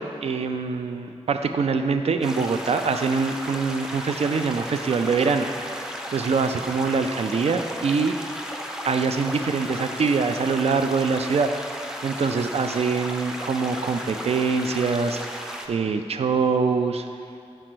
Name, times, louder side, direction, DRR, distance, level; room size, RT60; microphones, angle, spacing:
voice 1, 0.0-5.5 6.1-8.2 8.8-11.5 12.0-15.2 15.7-17.1, right 5 dB, 70° right, 7 dB, 0.4 m, -24 dB
sound 1, 2.2-15.7, equal, 5° right, 0.5 m, -35 dB
5.0 x 4.4 x 6.1 m, 2.4 s
wide cardioid pair, 75°, 11 cm